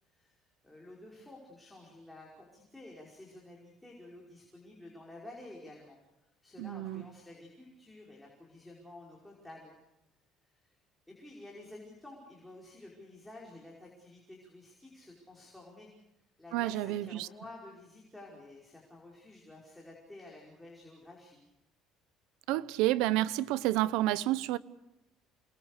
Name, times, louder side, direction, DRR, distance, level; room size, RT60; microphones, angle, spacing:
voice 1, 0.1-6.0 6.4-9.7 10.5-10.7 11.1-15.9 16.4-21.4, left 2 dB, 5° left, 5.3 m, -51 dB
voice 2, 6.6-7.0 16.5-17.3 22.5-24.6, right 15 dB, 85° right, 0.9 m, -30 dB
28.5 x 22.0 x 6.7 m
cardioid pair, 140°, 0 cm